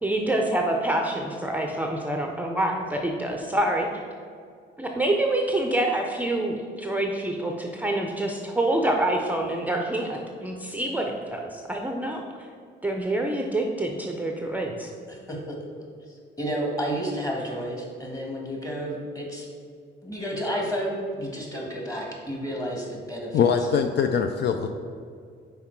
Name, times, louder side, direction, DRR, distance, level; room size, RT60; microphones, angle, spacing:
voice 1, 0.0-3.9 4.8-12.2 12.8-14.9, right 1 dB, 10° right, 1 dB, 0.5 m, -26 dB
voice 2, 15.1-15.6 16.4-19.5 20.0-23.5, equal, 15° left, -1 dB, 1.6 m, -31 dB
voice 3, 23.3-24.7, left 6 dB, 60° left, 7 dB, 0.4 m, -22 dB
5.7 x 4.5 x 4.5 m, 2.2 s
cardioid pair, 90°, 20 cm